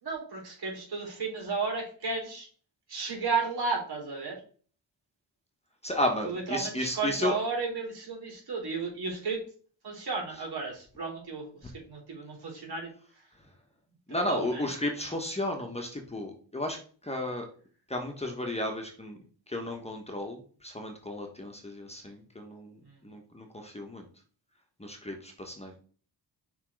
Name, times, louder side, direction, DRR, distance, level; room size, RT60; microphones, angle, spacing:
voice 1, 0.0-2.5 2.9-4.4 6.2-9.4 9.8-12.9 14.1-14.6 22.8-23.0, right 4 dB, 60° right, 0 dB, 3.4 m, -33 dB
voice 2, 5.8-7.3 14.1-16.8 17.0-17.5 17.9-19.2 19.5-24.1 24.8-25.8, left 1 dB, 15° left, 2 dB, 1.3 m, -33 dB
6.0 x 3.7 x 4.8 m, 0.43 s
cardioid pair, 90°, 43 cm